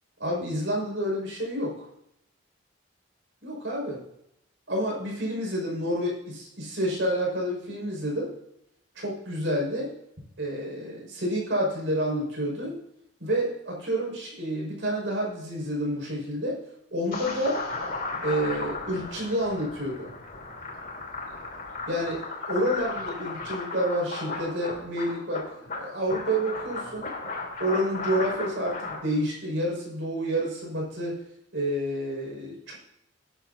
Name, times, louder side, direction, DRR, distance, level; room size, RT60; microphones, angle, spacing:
voice 1, 0.2-1.9 3.4-4.0 4.7-8.3 9.0-9.9 10.4-12.8 13.2-16.6 16.9-17.6 18.2-20.1 21.9-22.2 22.5-25.4 25.7-27.1 27.6-31.2 31.5-32.7, equal, 70° right, -2 dB, 5.4 m, -29 dB
sound 1, 17.1-29.0, left 3 dB, 45° left, 3.2 m, -35 dB
18.5 x 10.0 x 2.7 m, 0.80 s
head